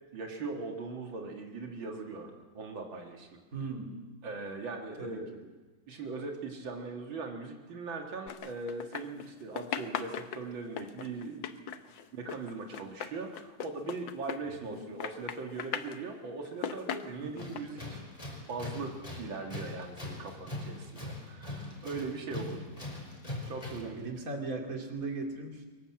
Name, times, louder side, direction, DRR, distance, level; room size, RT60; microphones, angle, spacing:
voice 1, 0.1-3.4 4.2-5.4 5.9-11.8 12.1-18.0 18.5-22.7 23.5-24.0, right 3 dB, 85° right, 2 dB, 2.7 m, -40 dB
voice 2, 3.5-4.0 5.0-5.4 14.6-14.8 17.2-17.5 23.8-25.7, right 3 dB, 45° right, 2 dB, 3.0 m, -38 dB
sound 1, 8.3-9.3 9.6-14.7 15.0-16.0 16.5-17.6, left 8 dB, 75° left, 1.7 m, -38 dB
Tools, 17.4-24.0, left 1 dB, 15° left, 4.7 m, -41 dB
23.5 x 19.5 x 7.6 m, 1.3 s
omnidirectional pair, 2.1 m